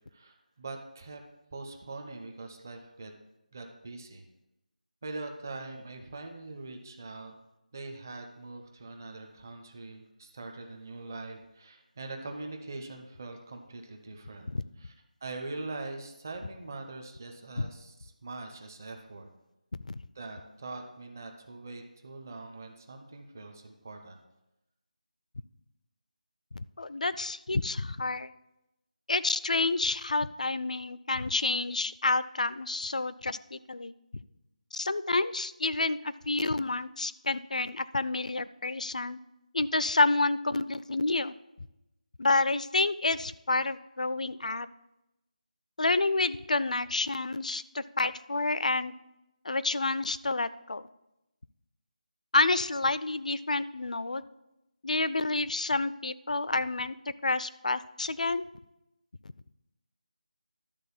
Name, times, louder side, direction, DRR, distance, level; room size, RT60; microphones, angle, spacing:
voice 1, 0.1-1.2 1.5-3.1 3.5-4.2 5.0-7.3 7.7-14.5 14.8-14.9 15.2-19.3 20.1-24.2, right 3 dB, 20° right, 4 dB, 0.7 m, -42 dB
voice 2, 26.6-28.3 29.1-33.9 34.7-39.2 39.5-41.3 42.2-44.7 45.8-48.9 49.4-50.8 52.3-54.2 54.8-56.9 57.2-58.4, left 3 dB, 55° left, 15 dB, 0.4 m, -29 dB
11.5 x 3.9 x 7.1 m, 0.92 s
figure-of-eight pair, 175°, 5 cm